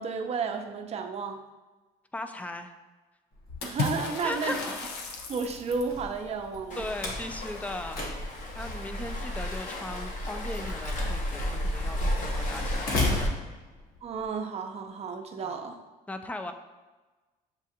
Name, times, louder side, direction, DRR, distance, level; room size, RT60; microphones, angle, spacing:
voice 1, 0.0-1.4 3.6-4.6 5.3-6.8 14.0-15.8, right 5 dB, 40° right, 4 dB, 0.6 m, -32 dB
voice 2, 2.1-2.7 4.2-4.6 6.7-13.4 15.4-15.6 16.1-16.5, left 1 dB, 10° left, 7 dB, 0.3 m, -38 dB
Slam, 3.3-14.2, left 2 dB, 65° left, 1.2 m, -37 dB
Water / Splash splatter, 3.6-6.0, left 3 dB, 80° left, 0.7 m, -34 dB
Waves surf, 6.7-13.3, left 1 dB, 50° left, 0.8 m, -33 dB
7.3 x 2.5 x 2.8 m, 1.2 s
cardioid pair, 110°, 17 cm